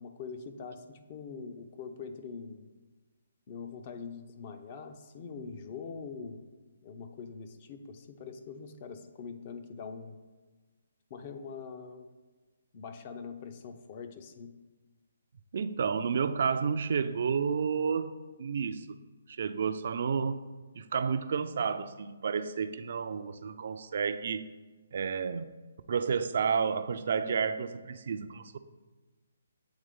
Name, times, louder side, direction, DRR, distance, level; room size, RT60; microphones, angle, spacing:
voice 1, 0.0-2.7 3.5-6.4 6.8-10.2 11.1-12.1 12.7-14.5, left 5 dB, 35° left, 7 dB, 0.5 m, -43 dB
voice 2, 15.5-18.1 18.4-18.9 19.3-20.4 20.7-24.5 24.9-25.5 25.9-28.6, right 6 dB, 55° right, 10 dB, 0.3 m, -31 dB
8.0 x 3.3 x 3.6 m, 1.3 s
hypercardioid pair, 155°, 0 cm